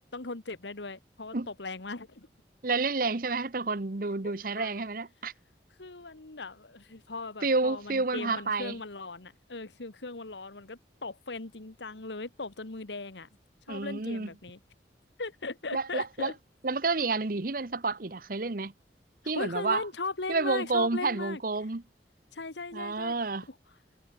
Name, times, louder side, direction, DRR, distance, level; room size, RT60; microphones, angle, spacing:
voice 1, 0.0-2.3 4.5-4.8 5.8-13.3 13.7-14.6 15.2-16.3 19.2-21.4 22.3-23.2 23.5-23.6, left 3 dB, 90° left, 1.7 m, -38 dB
voice 2, 2.6-5.3 7.4-8.7 13.7-14.3 15.7-16.3 16.6-18.7 19.3-19.8 20.3-21.8 22.7-23.5, right 3 dB, 50° right, 1.0 m, -29 dB
head